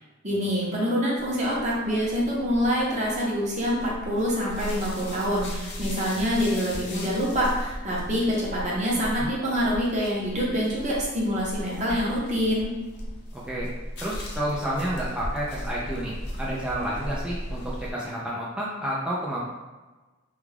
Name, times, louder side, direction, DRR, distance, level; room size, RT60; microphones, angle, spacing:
voice 1, 0.2-12.7, equal, 40° right, -5 dB, 0.8 m, -26 dB
sound 1, 1.2-17.9, equal, 60° left, 0.6 m, -37 dB
voice 2, 13.3-13.7 14.0-19.4, right 1 dB, 5° right, -7 dB, 0.3 m, -30 dB
2.3 x 2.2 x 3.2 m, 1.2 s
head